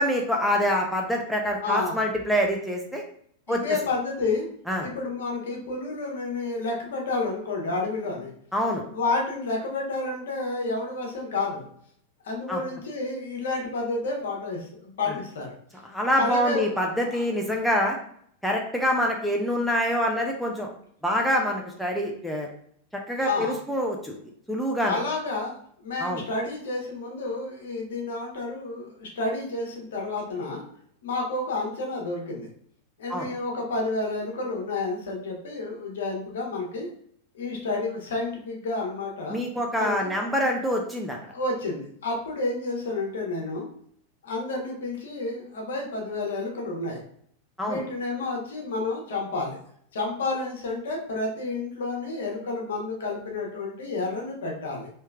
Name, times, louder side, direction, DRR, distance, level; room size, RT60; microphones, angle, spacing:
voice 1, 0.0-3.0 3.5-3.6 4.7-4.9 8.5-8.8 12.5-12.6 15.8-18.0 18.4-20.7 21.0-22.5 23.1-24.1 24.5-25.0 26.0-26.2 33.1-33.3 39.3-41.2 47.6-47.8, equal, ahead, -1 dB, 0.6 m, -25 dB
voice 2, 1.6-2.0 3.5-4.5 4.8-8.3 8.9-11.7 12.2-15.5 16.1-16.7 17.1-17.3 23.2-23.6 24.8-30.6 31.0-32.5 33.0-36.9 37.3-39.4 39.7-40.1 41.3-43.7 44.2-47.0 47.6-49.6 49.9-54.9, left 3 dB, 60° left, 0 dB, 1.1 m, -30 dB
4.3 x 3.0 x 2.3 m, 0.64 s
figure-of-eight pair, 90°, 0 cm